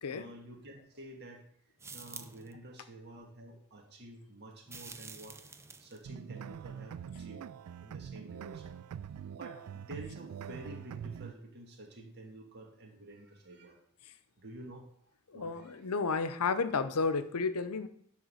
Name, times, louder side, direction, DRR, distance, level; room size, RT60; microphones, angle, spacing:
voice 1, 0.1-1.4 1.9-5.4 5.8-8.8 9.4-13.8 14.4-14.9 15.3-15.9, right 1 dB, 50° right, 2 dB, 1.8 m, -50 dB
sound 1, 1.8-2.5 4.7-6.0, right 4 dB, 10° right, 0.4 m, -48 dB
sound 2, 6.0-11.3, right 8 dB, 85° right, 0.3 m, -44 dB
voice 2, 15.3-17.9, left 4 dB, 90° left, 12 dB, 0.7 m, -32 dB
10.5 x 3.7 x 6.3 m, 0.65 s
head